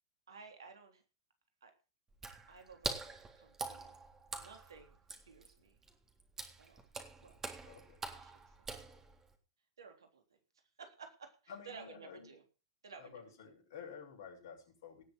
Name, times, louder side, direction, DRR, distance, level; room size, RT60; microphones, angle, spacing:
voice 1, 0.3-1.0 1.6-1.7 2.5-2.9 3.3-3.9 4.3-5.0 5.3-5.8 6.6-6.9 7.2-7.4 8.1-8.8 9.8-10.4 10.8-12.4 12.8-13.3, right 5 dB, 80° right, 5 dB, 3.6 m, -55 dB
Water / Splash splatter, 2.1-9.3, right 4 dB, 20° right, 3.5 m, -45 dB
voice 2, 7.6-8.0 11.5-12.3 13.0-15.0, left 6 dB, 65° left, 2 dB, 6.7 m, -51 dB
18.5 x 7.1 x 6.2 m, 0.34 s
hypercardioid pair, 100°, 2 cm